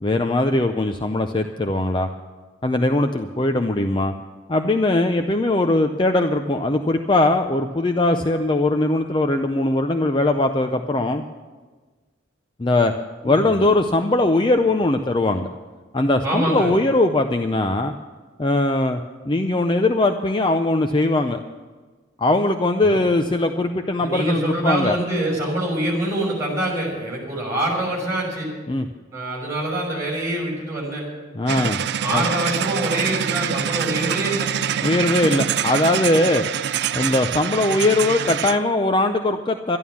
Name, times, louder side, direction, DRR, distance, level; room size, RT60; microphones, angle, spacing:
voice 1, 0.0-2.1 2.6-4.1 4.5-11.2 12.6-12.9 13.2-15.5 15.9-17.9 18.4-19.0 19.3-21.4 22.2-25.0 28.7-28.9 31.3-31.8 32.1-32.2 34.8-36.4 36.9-39.8, left 2 dB, 25° left, 6 dB, 0.5 m, -20 dB
voice 2, 13.2-13.6 16.2-16.7 22.8-23.0 24.0-28.5 29.1-31.0 32.0-34.5, right 1 dB, 15° right, -2 dB, 5.6 m, -25 dB
sound 1, 31.5-38.6, right 8 dB, 55° right, 0.4 m, -25 dB
12.5 x 11.0 x 7.1 m, 1.4 s
head